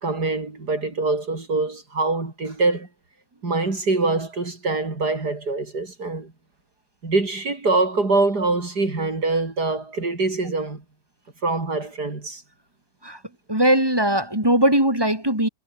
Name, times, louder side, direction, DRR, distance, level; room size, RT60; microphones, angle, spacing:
voice 1, 0.0-2.9 3.4-6.3 7.0-10.8 11.4-12.4, right 3 dB, 75° right, 4.9 m, -24 dB
voice 2, 13.5-15.5, right 1 dB, 15° right, 7.8 m, -19 dB
omnidirectional pair, 1.7 m